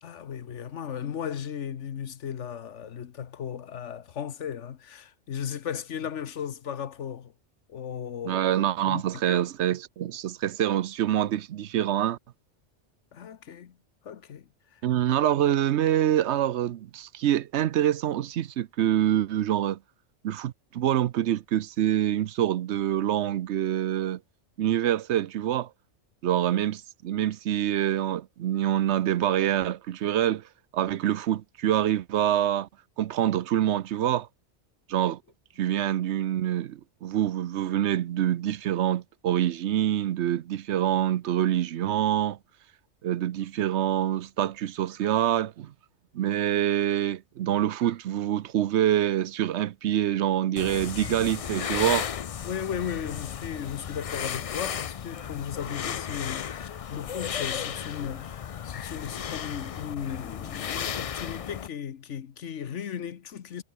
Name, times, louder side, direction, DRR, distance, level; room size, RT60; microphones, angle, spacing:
voice 1, 0.0-7.3 7.7-8.4 8.8-9.5 13.1-13.8 14.0-14.8 52.4-63.6, left 8 dB, 85° left, 1.3 m, -36 dB
voice 2, 8.3-12.2 14.8-19.8 20.2-24.2 24.6-25.7 26.2-30.4 30.7-32.7 33.0-34.3 34.9-35.2 35.6-42.4 43.0-45.7 46.1-52.1, right 11 dB, 70° right, 0.9 m, -26 dB
sound 1, 50.6-61.7, left 8 dB, 60° left, 0.3 m, -34 dB
omnidirectional pair, 1.2 m